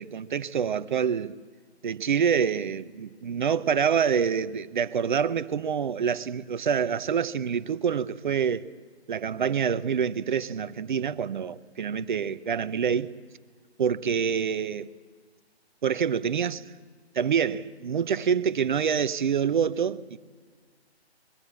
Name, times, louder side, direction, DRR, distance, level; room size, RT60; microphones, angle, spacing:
voice 1, 0.0-1.3 1.8-8.7 9.1-13.1 13.8-14.9 15.8-16.6 17.1-20.2, right 7 dB, 45° right, 0.9 m, -26 dB
25.0 x 22.5 x 7.3 m
figure-of-eight pair, 140°, 33 cm